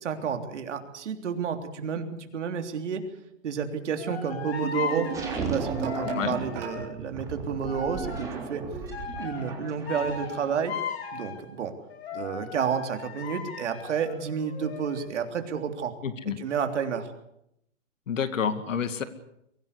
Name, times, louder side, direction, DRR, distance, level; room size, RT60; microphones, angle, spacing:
voice 1, 0.0-3.0 3.4-5.1 5.3-8.6 9.2-10.7 11.1-11.7 12.1-15.9 16.4-17.1, right 7 dB, 65° right, 6 dB, 3.5 m, -30 dB
sound 1, 4.0-7.0 7.7-8.5 8.9-11.4 11.9-15.1, left 6 dB, 55° left, 4.8 m, -37 dB
sound 2, 4.6-6.8, right 8 dB, 30° right, 5.1 m, -36 dB
sound 3, 5.1-10.6, right 4 dB, 10° right, 3.7 m, -35 dB
voice 2, 16.0-16.4 18.1-19.0, left 7 dB, 75° left, 11 dB, 2.4 m, -28 dB
23.0 x 17.0 x 8.3 m, 0.78 s
hypercardioid pair, 165°, 38 cm